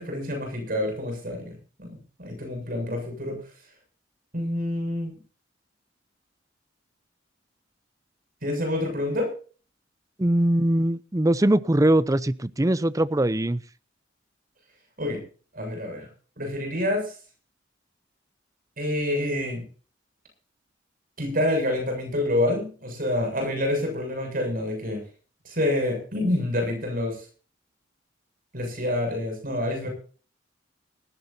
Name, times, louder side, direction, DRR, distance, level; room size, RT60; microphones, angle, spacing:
voice 1, 0.0-1.9 2.2-3.4 4.3-5.1 8.4-9.3 15.0-15.2 15.5-16.1 16.4-17.1 18.8-19.6 21.2-25.0 25.4-27.2 28.5-29.9, left 1 dB, 50° right, 4 dB, 7.5 m, -27 dB
voice 2, 10.2-13.6, right 1 dB, 20° right, 16 dB, 0.6 m, -21 dB
19.0 x 16.0 x 2.8 m, 0.39 s
head